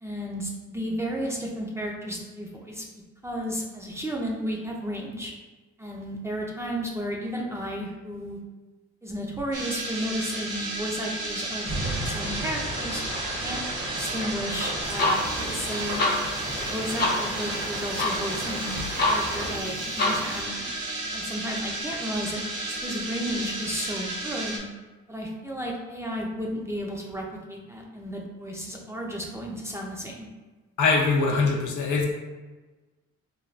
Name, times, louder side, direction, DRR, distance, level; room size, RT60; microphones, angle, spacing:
voice 1, 0.0-2.9 3.2-5.3 5.8-8.4 9.0-11.7 12.0-13.0 13.4-13.6 13.9-16.1 16.6-18.7 19.1-20.7 21.1-22.4 22.7-24.7 25.1-30.3, equal, 10° right, -2 dB, 0.4 m, -33 dB
sound 1, 9.5-24.6, right 2 dB, 85° right, 0.8 m, -33 dB
sound 2, 11.6-19.5, right 1 dB, 65° right, 1.1 m, -35 dB
sound 3, 14.8-20.4, left 2 dB, 35° left, 0.6 m, -29 dB
voice 2, 30.8-32.0, left 4 dB, 75° left, 0 dB, 0.6 m, -22 dB
3.2 x 2.2 x 2.5 m, 1.2 s
cardioid pair, 90°, 30 cm